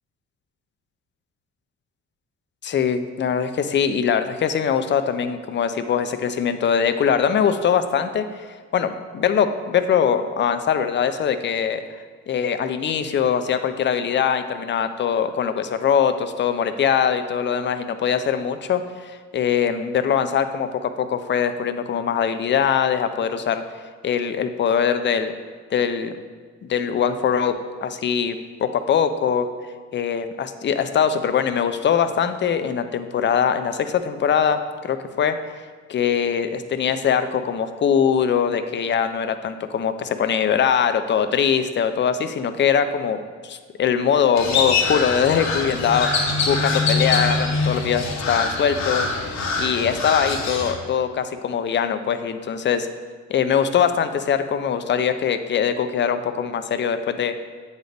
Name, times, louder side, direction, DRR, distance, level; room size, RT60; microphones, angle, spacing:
voice 1, 2.6-8.3 8.7-11.8 12.3-23.6 24.0-25.3 25.7-26.1 26.6-27.5 27.8-29.5 29.9-35.4 35.9-49.1 49.6-52.9 53.3-57.3, left 7 dB, 40° left, 10 dB, 0.4 m, -22 dB
Crow, 44.4-50.7, left 4 dB, 65° left, 1.0 m, -24 dB
8.0 x 4.0 x 3.4 m, 1.5 s
cardioid pair, 90°, 30 cm